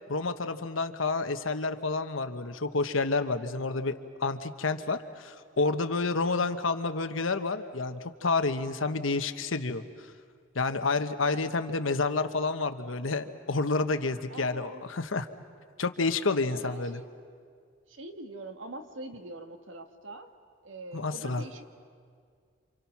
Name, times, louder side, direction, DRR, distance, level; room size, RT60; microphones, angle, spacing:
voice 1, 0.1-3.9 4.2-9.8 10.5-15.3 15.8-17.0 20.9-21.4, left 3 dB, 85° left, 9 dB, 1.2 m, -29 dB
voice 2, 11.2-11.5 14.3-14.8 16.5-17.1 17.9-20.3 20.6-21.6, right 2 dB, 75° right, 6 dB, 1.8 m, -43 dB
28.5 x 27.5 x 6.0 m, 2.1 s
head